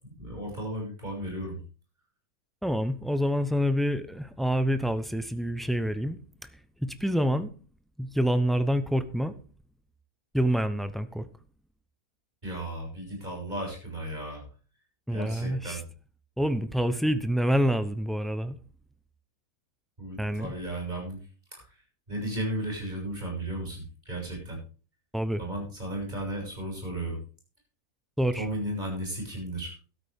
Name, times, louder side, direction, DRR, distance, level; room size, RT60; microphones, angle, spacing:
voice 1, 0.2-1.6 12.4-14.5 15.1-15.8 20.0-21.2 21.5-24.6 25.4-27.2 28.3-29.8, right 1 dB, 30° right, 7.0 m, -35 dB
voice 2, 2.6-6.2 6.8-7.5 8.0-9.3 10.3-11.3 15.1-15.8 16.4-18.6 20.2-20.5 25.1-25.4 28.2-28.5, equal, ahead, 0.3 m, -27 dB
13.0 x 13.0 x 3.5 m
omnidirectional pair, 1.6 m